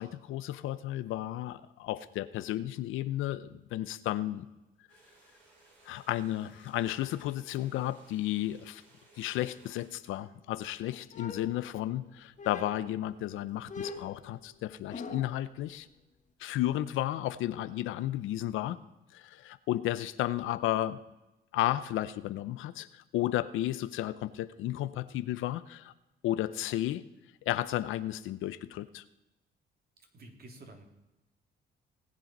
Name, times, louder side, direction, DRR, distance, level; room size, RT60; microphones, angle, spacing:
voice 1, 0.0-4.5 5.8-8.8 9.2-15.9 16.4-18.8 19.1-21.0 21.5-25.9 26.2-27.0 27.5-29.0, left 14 dB, 90° left, 14 dB, 0.6 m, -33 dB
sound 1, 4.9-9.9, right 2 dB, 85° right, 6.1 m, -61 dB
sound 2, 11.1-12.0 12.4-13.0 13.7-15.4, left 4 dB, 40° left, 1.5 m, -43 dB
voice 2, 18.5-18.8 26.3-26.6 30.0-30.9, right 2 dB, 50° right, 3 dB, 2.9 m, -52 dB
18.5 x 7.6 x 5.3 m, 0.99 s
cardioid pair, 90°, 20 cm